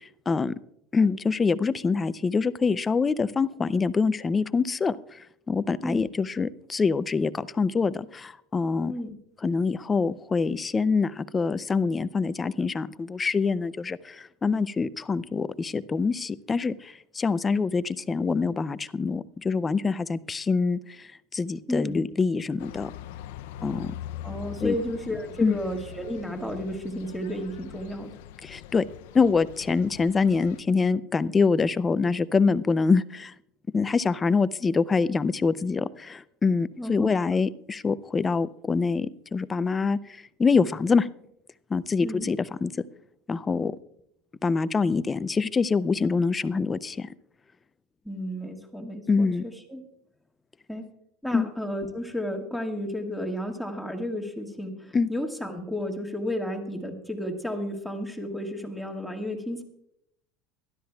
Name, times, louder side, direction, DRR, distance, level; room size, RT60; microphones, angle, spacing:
voice 1, 0.9-5.0 5.5-8.9 9.4-20.8 21.3-22.9 23.6-23.9 24.6-24.7 25.4-25.6 28.4-28.8 29.1-33.3 33.7-40.0 40.4-41.1 41.7-42.7 43.3-43.7 44.4-47.1 49.1-49.4 51.3-51.5 54.9-55.1, left 4 dB, 15° left, 16 dB, 0.4 m, -25 dB
voice 2, 21.7-22.0 24.2-28.1 36.8-37.1 42.0-42.3 48.0-49.8 50.7-50.8 51.2-59.6, left 1 dB, ahead, 2 dB, 1.6 m, -32 dB
sound 1, 22.6-30.6, left 12 dB, 80° left, 0.4 m, -42 dB
23.0 x 12.0 x 2.3 m, 0.75 s
supercardioid pair, 155°, 0 cm